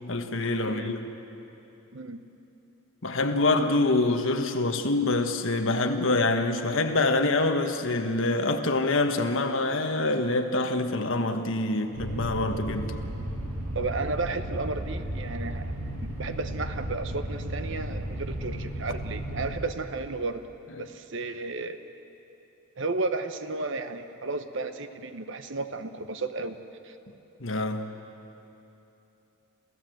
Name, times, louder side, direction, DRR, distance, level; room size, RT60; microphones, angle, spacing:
voice 1, 0.1-1.0 3.0-12.9 27.4-27.9, left 2 dB, 65° left, 6 dB, 1.4 m, -25 dB
voice 2, 0.6-1.0 1.9-2.2 13.7-15.7 16.0-20.4 20.8-21.8 22.8-26.6 26.8-27.0, right 3 dB, 60° right, 9 dB, 1.1 m, -33 dB
sound 1, 12.0-19.7, right 1 dB, 80° right, 2.6 m, -34 dB
28.0 x 15.5 x 7.8 m, 3.0 s
head